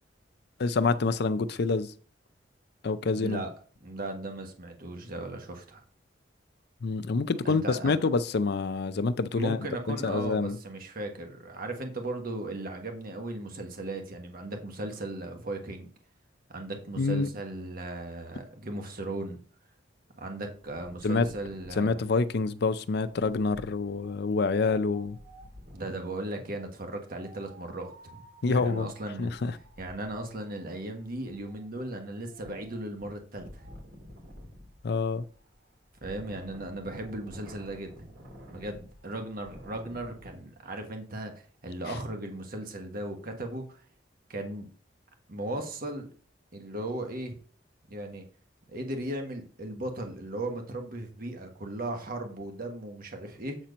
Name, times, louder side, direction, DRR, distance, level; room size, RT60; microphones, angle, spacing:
voice 1, 0.6-1.9 2.8-3.4 6.8-10.6 17.0-17.3 21.0-21.3 21.8-25.2 28.4-28.9 29.2-29.5 34.8-35.2, left 4 dB, 60° left, 0.5 m, -27 dB
voice 2, 3.2-3.5 3.8-5.8 7.4-7.9 9.3-15.9 16.5-19.4 20.2-22.0 25.7-28.2 28.5-29.3 29.8-33.7 36.0-38.0 38.5-41.3 41.6-43.8 44.3-44.7 45.3-46.1 46.5-47.4 47.9-48.2 48.7-53.6, right 1 dB, 55° right, 1.3 m, -37 dB
Wind, 20.6-26.0 27.1-40.3, equal, 85° right, 3.2 m, -51 dB
8.2 x 4.4 x 5.1 m
head